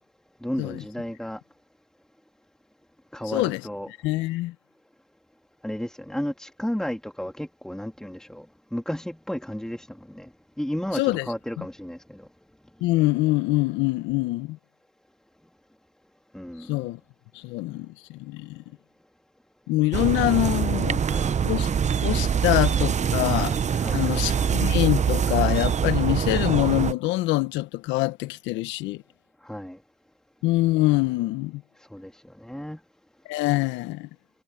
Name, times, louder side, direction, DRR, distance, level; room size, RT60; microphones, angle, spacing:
voice 1, 0.4-1.4 3.1-3.9 5.6-10.3 10.6-12.3 16.3-16.9 21.0-21.4 23.8-24.6 29.4-29.8 31.9-32.8, equal, 5° left, 2.7 m, -33 dB
voice 2, 4.0-4.5 10.9-11.2 12.8-14.6 16.7-17.0 17.4-18.6 19.7-21.0 21.4-21.7 22.0-23.6 23.9-29.0 30.4-31.6 33.3-34.1, left 19 dB, 75° left, 1.4 m, -24 dB
sound 1, 19.9-26.9, right 7 dB, 40° right, 1.0 m, -24 dB
supercardioid pair, 65°, 19 cm